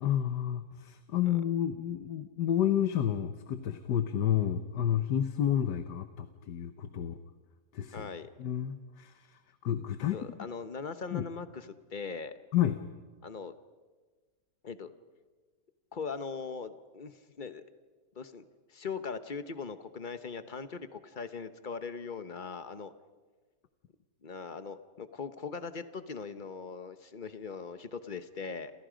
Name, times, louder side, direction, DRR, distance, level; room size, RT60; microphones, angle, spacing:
voice 1, 0.0-7.2 7.7-8.1 8.4-10.2 11.1-11.2 12.5-12.8, left 10 dB, 75° left, 9 dB, 1.6 m, -30 dB
voice 2, 7.9-8.3 10.1-12.3 13.2-13.5 14.6-14.9 15.9-17.6 18.1-18.4 18.7-22.9 24.2-28.7, left 5 dB, 35° left, 11 dB, 1.0 m, -40 dB
29.0 x 28.0 x 5.1 m, 1.4 s
omnidirectional pair, 1.9 m